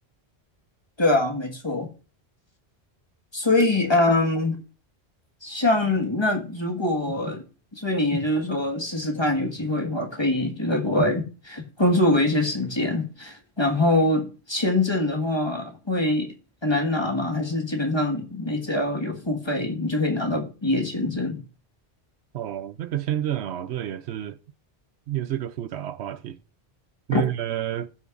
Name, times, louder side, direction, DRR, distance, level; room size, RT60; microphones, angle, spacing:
voice 1, 1.0-1.9 3.3-4.6 5.4-7.4 7.8-16.3 16.6-21.4 27.1-27.2, left 2 dB, 25° left, 1.7 m, -24 dB
voice 2, 22.3-24.4 25.1-26.4 27.1-27.9, right 12 dB, 80° right, 0.9 m, -29 dB
19.0 x 6.3 x 2.5 m
omnidirectional pair, 1.1 m